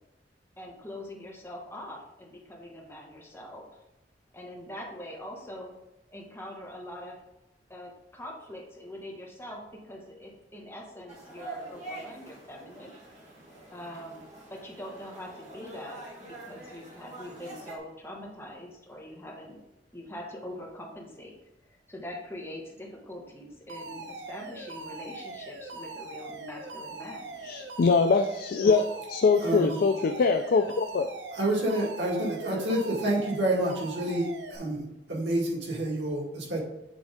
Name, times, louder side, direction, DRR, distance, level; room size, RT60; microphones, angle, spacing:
voice 1, 0.6-3.6 4.3-5.7 6.1-7.2 7.7-12.9 13.7-14.2 14.5-19.6 19.9-21.3 21.6-27.3, left 1 dB, 15° left, -2 dB, 1.4 m, -43 dB
sound 1, 11.1-17.8, right 2 dB, 40° right, 1.6 m, -45 dB
Alarm, 23.7-34.6, right 3 dB, 70° right, 0.8 m, -42 dB
voice 2, 27.4-31.1, left 4 dB, 55° left, 7 dB, 0.3 m, -23 dB
voice 3, 29.4-29.8 31.3-36.6, right 1 dB, 90° right, -3 dB, 2.1 m, -28 dB
8.4 x 3.5 x 3.7 m, 0.93 s
head